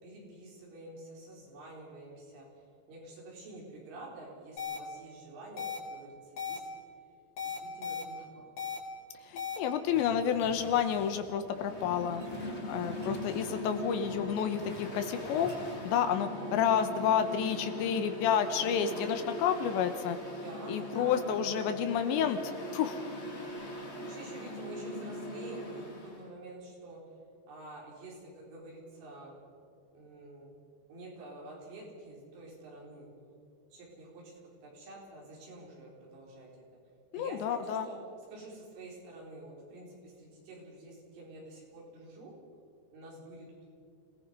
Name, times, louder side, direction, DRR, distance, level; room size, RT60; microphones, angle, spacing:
voice 1, 0.0-2.5 2.9-5.7 5.9-6.7 7.4-8.5 16.2-16.5 18.6-19.2 20.4-21.3 24.0-25.8 26.1-27.0 27.5-29.3 30.0-30.5 30.9-33.1 33.7-34.3 34.6-36.5 37.1-38.0 38.3-42.3 42.9-43.7, right 2 dB, 85° right, -2 dB, 7.2 m, -48 dB
sound 1, 4.6-4.8 5.6-5.8 6.4-6.6 7.4-8.0 8.6-8.8 9.4-9.6, left 7 dB, 45° left, 3.5 m, -36 dB
voice 2, 9.3-15.5 15.9-20.2 20.7-22.4 22.7-23.1 37.1-37.9, left 8 dB, 80° left, 8 dB, 3.0 m, -30 dB
sound 2, 9.9-15.8, equal, 5° left, 2.3 m, -50 dB
Mechanical fan, 11.4-26.2, left 1 dB, 25° left, 1.3 m, -41 dB
27.0 x 18.0 x 5.4 m, 2.4 s
omnidirectional pair, 5.5 m